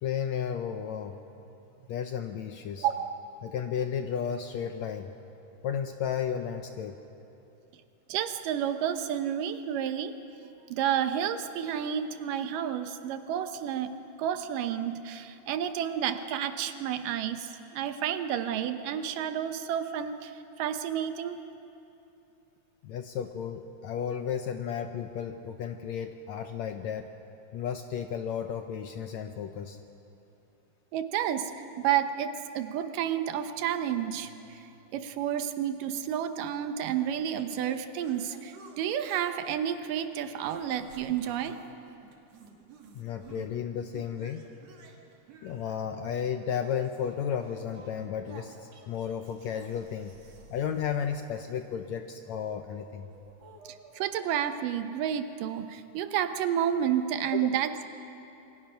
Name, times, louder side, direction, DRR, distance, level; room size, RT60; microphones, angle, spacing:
voice 1, 0.0-1.2 1.9-2.9 3.4-5.1 5.6-7.0 22.8-27.1 27.5-29.8 42.9-44.5 45.4-50.1 50.5-53.1 57.3-57.4, left 8 dB, 75° left, 6 dB, 1.7 m, -33 dB
voice 2, 2.8-3.2 8.1-10.1 10.7-21.4 30.9-34.6 34.9-41.6 53.9-57.9, right 9 dB, 80° right, 9 dB, 2.5 m, -30 dB
sound 1, 37.3-39.4 39.8-41.7 42.0-43.5 43.9-51.9 52.6-54.0, right 5 dB, 55° right, 3.0 m, -53 dB
27.5 x 23.0 x 5.8 m, 2.8 s
omnidirectional pair, 3.9 m